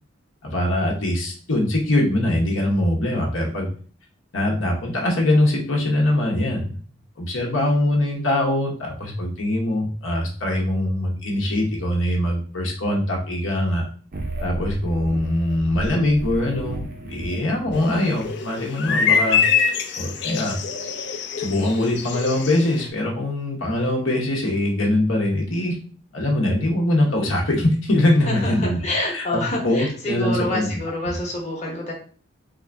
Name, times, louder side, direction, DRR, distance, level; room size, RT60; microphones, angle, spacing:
voice 1, 0.4-3.7 4.3-6.8 7.2-13.8 14.4-19.4 20.0-20.6 21.4-25.8 26.1-30.7, left 1 dB, 75° left, 0 dB, 0.9 m, -22 dB
sound 1, 14.1-18.2, right 2 dB, 45° right, 0.6 m, -33 dB
sound 2, 17.7-22.9, left 6 dB, 55° left, 0.4 m, -24 dB
voice 2, 28.3-31.9, left 1 dB, 35° left, -3 dB, 1.0 m, -27 dB
3.6 x 2.5 x 3.3 m, 0.42 s
head